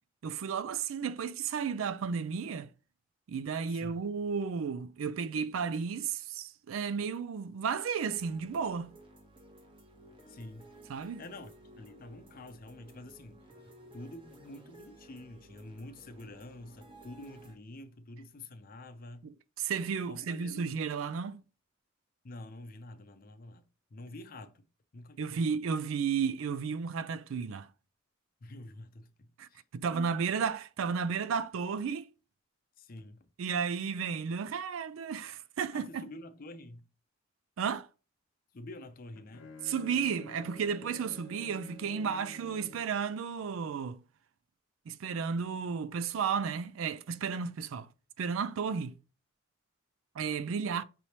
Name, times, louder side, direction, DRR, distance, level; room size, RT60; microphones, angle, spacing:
voice 1, 0.2-2.7 3.3-8.9 10.9-11.2 19.6-21.4 25.2-27.7 29.4-32.1 33.4-36.1 37.6-37.9 39.6-44.0 44.9-47.9 48.2-49.0 50.2-50.8, right 6 dB, 75° right, 0.4 m, -33 dB
voice 2, 3.7-4.0 10.3-10.7 11.0-19.3 20.1-20.8 22.2-24.7 24.9-25.5 28.4-29.6 32.8-33.3 35.7-36.9 38.5-39.5, left 2 dB, 45° left, 0.5 m, -48 dB
sound 1, 8.1-17.6, right 1 dB, 25° right, 1.0 m, -55 dB
Bowed string instrument, 38.8-43.0, left 2 dB, 90° left, 0.7 m, -50 dB
5.3 x 3.2 x 2.8 m
head